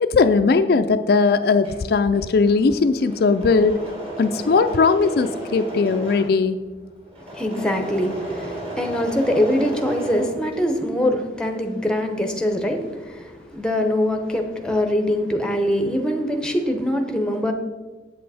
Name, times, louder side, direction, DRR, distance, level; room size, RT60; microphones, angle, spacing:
voice 1, 0.0-3.8 4.2-6.6, left 4 dB, 60° left, 9 dB, 0.4 m, -18 dB
Engine / Mechanisms, 1.4-11.0 11.3-13.7 13.9-14.7, right 1 dB, 35° right, 2.2 m, -35 dB
voice 2, 7.2-17.5, left 1 dB, 5° left, 5 dB, 0.8 m, -23 dB
8.2 x 7.6 x 4.1 m, 1.3 s
head